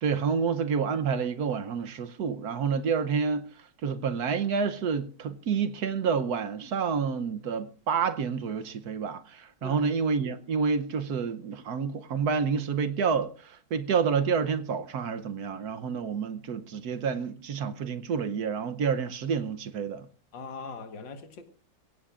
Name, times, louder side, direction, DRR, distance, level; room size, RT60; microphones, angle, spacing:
voice 1, 0.0-3.5 3.8-20.0, right 6 dB, 60° right, 1.2 m, -29 dB
voice 2, 20.3-21.4, left 4 dB, 75° left, 2.1 m, -40 dB
23.0 x 16.5 x 2.5 m
omnidirectional pair, 2.0 m